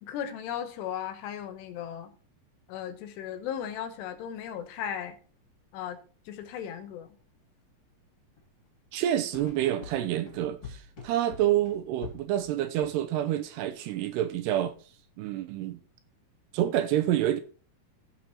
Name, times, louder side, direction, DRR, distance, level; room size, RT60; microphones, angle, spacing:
voice 1, 0.0-2.1 2.7-5.2 5.7-6.0 6.3-7.2, left 9 dB, 80° left, 2.9 m, -36 dB
sound 1, 3.5-3.7 3.9-4.0 4.5-4.7 5.4-5.5 6.3-8.0 8.4-13.5 13.8-14.4 14.8-15.1, left 4 dB, 35° left, 2.4 m, -47 dB
voice 2, 8.9-14.7 15.2-15.8 16.5-17.4, right 12 dB, 80° right, 2.5 m, -28 dB
17.0 x 6.1 x 2.8 m
omnidirectional pair, 5.1 m